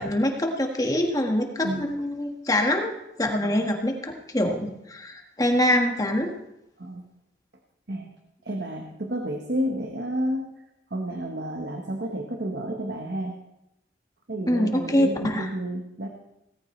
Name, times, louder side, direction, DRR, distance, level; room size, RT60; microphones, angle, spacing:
voice 1, 0.0-6.3 14.5-15.5, left 1 dB, 20° left, 2 dB, 1.6 m, -25 dB
voice 2, 1.6-1.9 3.4-3.6 6.8-7.0 7.9-8.1 8.4-10.5 10.9-13.4 14.3-16.1, right 1 dB, 65° right, 3 dB, 1.2 m, -31 dB
18.0 x 14.0 x 3.2 m, 0.85 s
head